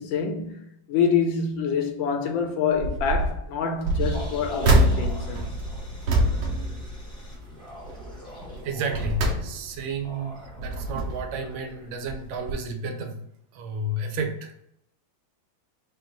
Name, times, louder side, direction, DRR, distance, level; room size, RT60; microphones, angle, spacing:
voice 1, 0.0-5.5, left 6 dB, 80° left, 1.4 m, -26 dB
sound 1, 2.7-3.4 3.8-7.5 7.9-8.2 8.7-9.9 10.4-11.4 12.1-12.2 12.5-12.6, right 1 dB, 65° right, 1.0 m, -25 dB
sound 2, 4.0-11.9, equal, 5° left, 0.3 m, -42 dB
voice 2, 8.6-13.2 13.5-14.6, right 2 dB, 85° right, 1.4 m, -32 dB
4.5 x 2.3 x 3.8 m
omnidirectional pair, 2.1 m